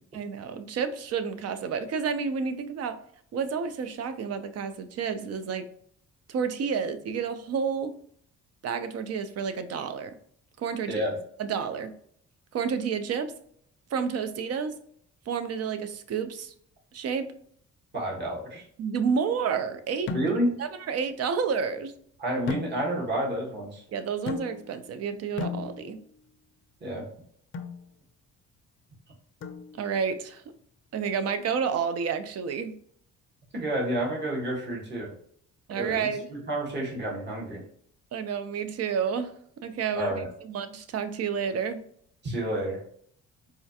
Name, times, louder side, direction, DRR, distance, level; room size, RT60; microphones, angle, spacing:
voice 1, 0.1-3.0 3.3-5.6 6.3-7.9 8.6-10.1 10.6-11.0 11.4-11.9 12.5-13.3 13.9-14.8 15.3-16.5 16.9-17.3 18.8-20.3 20.6-21.9 23.9-26.0 29.7-30.4 30.9-32.7 35.7-36.3 38.1-39.3 39.6-40.1 40.4-41.8, right 6 dB, 55° right, 10 dB, 0.5 m, -30 dB
voice 2, 17.9-18.6 20.1-20.6 22.2-23.8 26.8-27.1 33.5-35.1 35.7-37.6 39.9-40.3 42.2-42.8, right 1 dB, 35° right, -3 dB, 1.4 m, -30 dB
sound 1, 20.1-20.7 22.5-23.2 24.3-24.9 25.4-26.2 27.5-27.9 29.4-30.0, left 5 dB, 40° left, 0.5 m, -36 dB
4.2 x 2.4 x 2.7 m, 0.64 s
cardioid pair, 90°, 30 cm